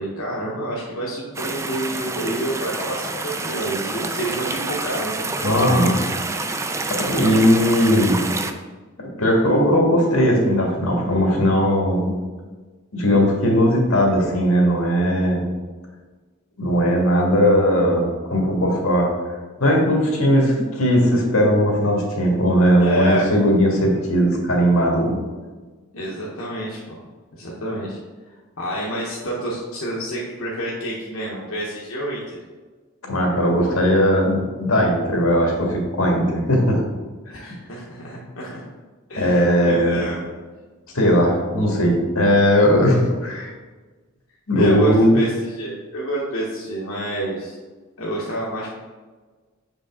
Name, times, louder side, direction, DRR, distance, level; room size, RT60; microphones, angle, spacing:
voice 1, 0.0-5.2 22.8-23.3 25.9-27.0 27.3-28.0 28.6-32.4 37.3-38.6 39.1-40.3 44.5-47.6 48.0-48.7, right 1 dB, 70° left, -5 dB, 1.1 m, -28 dB
sound 1, 1.3-8.5, right 3 dB, 15° right, 0.3 m, -28 dB
voice 2, 5.4-6.0 6.9-8.2 9.2-12.1 12.9-15.4 16.6-19.1 19.6-25.2 33.0-36.8 37.4-37.5 39.2-40.0 40.9-43.5 44.5-45.2, equal, 90° left, 0 dB, 1.8 m, -18 dB
6.7 x 5.3 x 3.6 m, 1.3 s
head